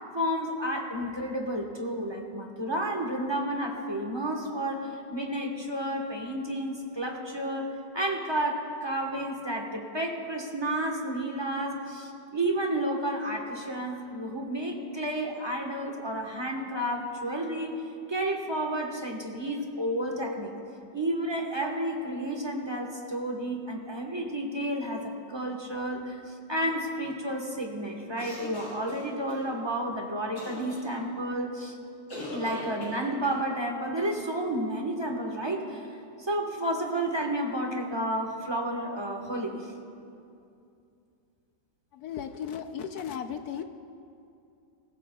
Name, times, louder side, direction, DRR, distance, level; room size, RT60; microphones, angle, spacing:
voice 1, 0.1-7.7 7.9-17.8 18.1-20.5 20.9-31.8 32.3-35.9 36.2-39.7, right 1 dB, 20° right, 1 dB, 1.0 m, -31 dB
sound 1, 28.2-29.4 30.4-30.8 32.1-33.4, left 1 dB, 85° left, 4.7 m, -39 dB
voice 2, 41.9-43.6, left 8 dB, 70° left, 8 dB, 1.0 m, -35 dB
23.5 x 15.0 x 2.3 m, 2.5 s
omnidirectional pair, 2.0 m